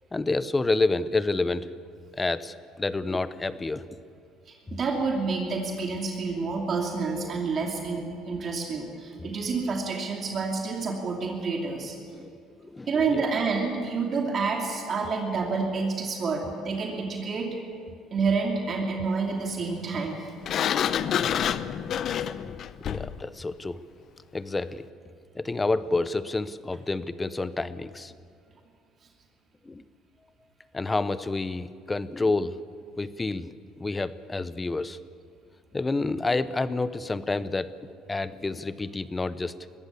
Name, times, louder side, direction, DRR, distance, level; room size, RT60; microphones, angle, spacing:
voice 1, 0.1-1.7 2.1-3.8 9.2-9.4 12.1-12.3 12.7-13.3 22.8-23.8 24.3-24.8 25.3-28.1 29.7-29.8 30.7-32.6 33.0-35.0 35.7-37.7 38.1-39.5, left 3 dB, 20° left, 15 dB, 0.8 m, -29 dB
voice 2, 4.5-12.0 12.9-17.6 18.1-20.3, right 4 dB, 45° right, 1 dB, 2.7 m, -28 dB
Sliding door, 20.4-23.2, left 9 dB, 55° left, 0.7 m, -27 dB
21.0 x 15.5 x 8.3 m, 2.2 s
supercardioid pair, 100°, 0 cm